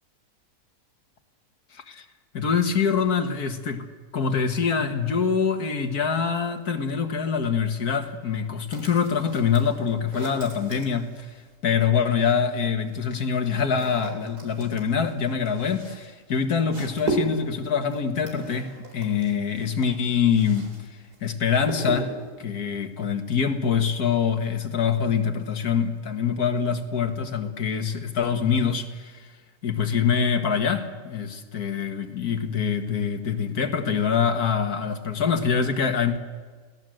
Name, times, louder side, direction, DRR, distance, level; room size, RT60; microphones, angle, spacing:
voice 1, 1.7-2.1 2.3-3.8 4.1-20.7 21.2-22.1 22.4-29.3 29.6-36.2, left 6 dB, 75° left, 6 dB, 2.1 m, -25 dB
sound 1, 8.7-11.6 12.6-20.8 21.1-22.3, right 2 dB, 90° right, 4.9 m, -36 dB
29.0 x 18.5 x 7.8 m, 1.5 s
omnidirectional pair, 1.6 m